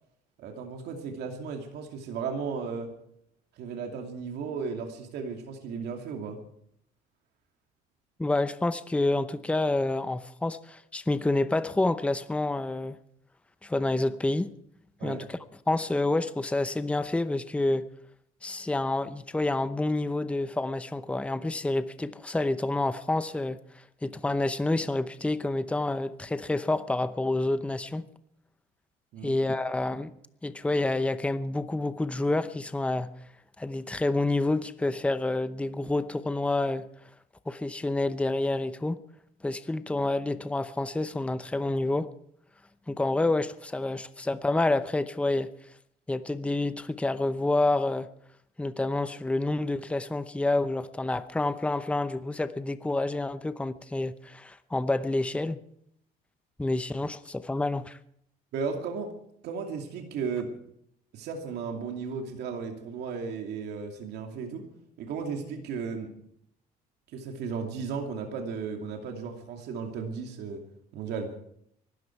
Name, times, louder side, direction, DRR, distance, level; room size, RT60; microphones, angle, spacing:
voice 1, 0.4-2.9 3.6-6.4 15.0-15.3 29.1-29.4 58.5-59.1 59.4-60.5 61.1-64.7 65.0-66.1 67.1-70.6 70.9-71.3, right 5 dB, 75° right, 3 dB, 2.6 m, -35 dB
voice 2, 8.2-13.0 13.6-14.5 15.0-15.4 15.7-17.9 18.4-23.6 24.0-28.0 29.2-30.1 30.4-33.1 33.6-36.9 37.5-39.0 39.4-42.1 42.9-45.5 46.1-48.1 48.6-55.6 56.6-58.0, left 2 dB, 5° left, 12 dB, 0.7 m, -28 dB
23.5 x 13.0 x 4.6 m, 0.72 s
cardioid pair, 110°, 17 cm